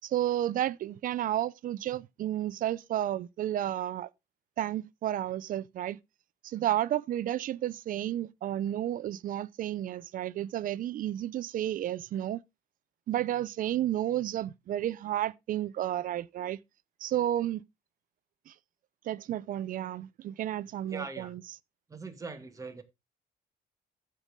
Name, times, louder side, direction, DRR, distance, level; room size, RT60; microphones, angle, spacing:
voice 1, 0.0-4.1 4.6-6.0 6.4-12.4 13.1-16.6 17.0-17.6 18.5-18.6 19.1-21.4, right 12 dB, 55° right, 0.5 m, -32 dB
voice 2, 20.9-21.3 21.9-22.8, right 3 dB, 20° right, 2.1 m, -41 dB
14.5 x 5.4 x 3.6 m
cardioid pair, 110°, 17 cm